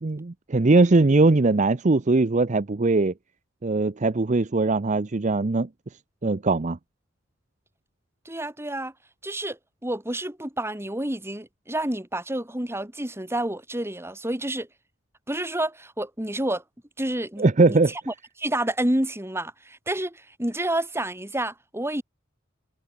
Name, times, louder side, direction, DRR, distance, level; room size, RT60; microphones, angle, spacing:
voice 1, 0.0-3.1 3.6-5.7 6.2-6.8 17.4-17.9, right 3 dB, 40° right, 0.6 m, -20 dB
voice 2, 8.2-8.9 9.2-14.7 15.3-16.6 17.0-22.0, right 1 dB, 15° right, 3.3 m, -29 dB
head